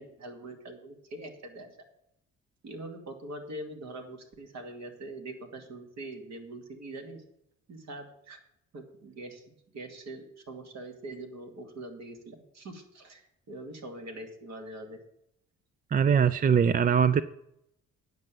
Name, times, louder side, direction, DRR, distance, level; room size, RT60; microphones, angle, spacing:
voice 1, 0.0-1.7 2.6-7.2 7.7-8.4 8.7-15.0, right 2 dB, 60° right, 4 dB, 2.5 m, -43 dB
voice 2, 15.9-17.2, right 7 dB, 30° right, 14 dB, 0.4 m, -22 dB
9.5 x 6.7 x 7.6 m, 0.78 s
cardioid pair, 90°, 30 cm